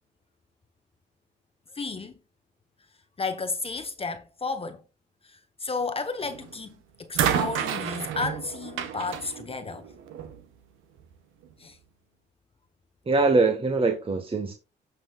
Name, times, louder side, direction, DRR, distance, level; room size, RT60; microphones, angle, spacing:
voice 1, 1.7-2.1 3.2-4.8 5.3-9.8 11.6-11.8, left 4 dB, 30° left, 1.0 m, -33 dB
sound 1, 6.2-6.6 7.1-10.4 11.4-11.5, right 9 dB, 90° right, 1.2 m, -30 dB
voice 2, 13.1-14.5, right 3 dB, 25° right, 1.4 m, -23 dB
16.5 x 5.9 x 2.3 m
cardioid pair, 90°, 20 cm